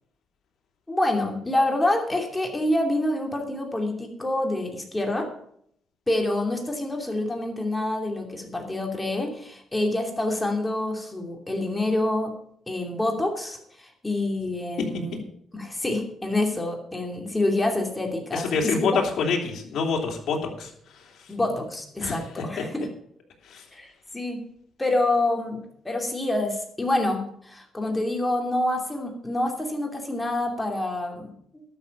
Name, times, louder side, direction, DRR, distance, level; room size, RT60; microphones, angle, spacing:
voice 1, 0.9-5.3 6.1-12.3 12.7-15.2 15.5-19.0 21.3-22.9 23.7-24.4 24.8-31.6, left 1 dB, 15° left, 2 dB, 2.7 m, -27 dB
voice 2, 18.3-21.2 22.0-22.2 23.4-23.6, left 5 dB, 65° left, 1 dB, 3.1 m, -27 dB
12.5 x 6.9 x 7.3 m, 0.68 s
cardioid pair, 90°, 0 cm